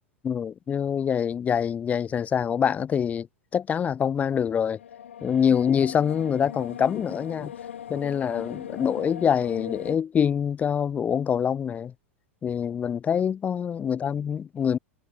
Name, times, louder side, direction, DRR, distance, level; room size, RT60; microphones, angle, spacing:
voice 1, 0.2-3.3 3.5-4.8 5.2-7.5 7.9-11.9 12.4-14.8, left 8 dB, 20° left, 1.0 m, -25 dB
sound 1, 4.7-10.0, left 9 dB, 65° left, 1.5 m, -39 dB
figure-of-eight pair, 90°, 7 cm